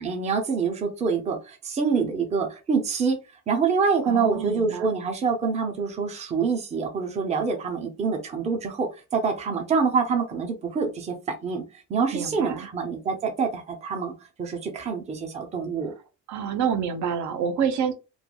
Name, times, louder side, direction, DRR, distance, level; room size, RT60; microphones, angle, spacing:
voice 1, 0.0-3.2 3.5-14.1 14.4-15.9, right 5 dB, 20° right, 0.5 m, -26 dB
voice 2, 4.1-4.9 12.1-12.7 16.3-17.9, right 7 dB, 70° right, 0.6 m, -27 dB
3.1 x 2.2 x 2.3 m
cardioid pair, 180°, 30 cm